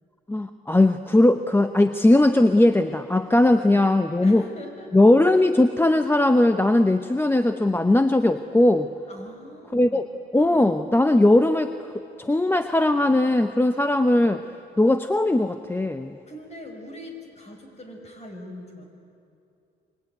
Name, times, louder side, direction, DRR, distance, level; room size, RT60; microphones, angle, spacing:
voice 1, 0.3-4.4 4.9-8.9 9.7-10.0 10.3-14.4 14.8-16.1, left 1 dB, 10° left, 8 dB, 0.9 m, -19 dB
voice 2, 4.2-5.0 9.1-10.1 16.3-18.8, left 1 dB, 35° left, 3 dB, 5.9 m, -41 dB
26.0 x 23.5 x 9.4 m, 2.5 s
cardioid pair, 90°, 20 cm